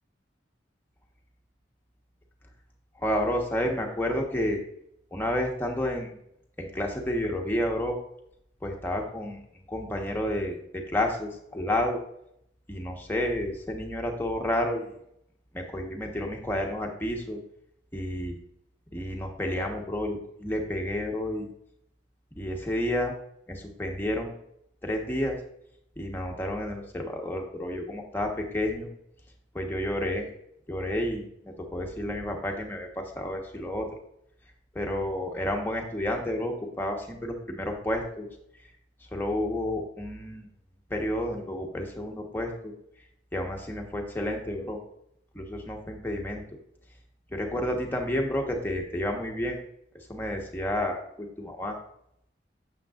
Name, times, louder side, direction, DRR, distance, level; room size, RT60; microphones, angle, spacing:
voice 1, 3.0-4.6 5.1-6.1 6.6-8.0 8.6-12.0 12.7-14.9 15.5-17.4 17.9-18.3 18.9-21.5 22.4-23.1 23.5-24.3 24.8-25.4 26.0-28.9 29.5-30.2 30.7-31.2 31.7-33.9 34.7-38.3 39.1-40.5 40.9-42.7 43.3-44.8 45.3-46.4 47.3-49.6 50.1-51.8, left 1 dB, 10° left, 1 dB, 1.2 m, -30 dB
9.1 x 7.4 x 2.5 m, 0.75 s
head